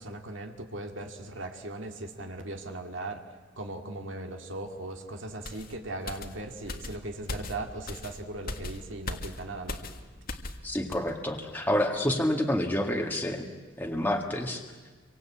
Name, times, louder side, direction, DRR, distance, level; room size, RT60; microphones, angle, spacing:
voice 1, 0.0-3.2 3.6-9.8, right 2 dB, 70° right, 4 dB, 2.3 m, -38 dB
sound 1, 5.4-10.6 10.9-11.1, left 2 dB, 50° left, 1.9 m, -39 dB
voice 2, 10.6-13.5 13.8-14.6, left 1 dB, 10° left, 1 dB, 1.9 m, -28 dB
28.0 x 24.0 x 8.6 m, 1.4 s
head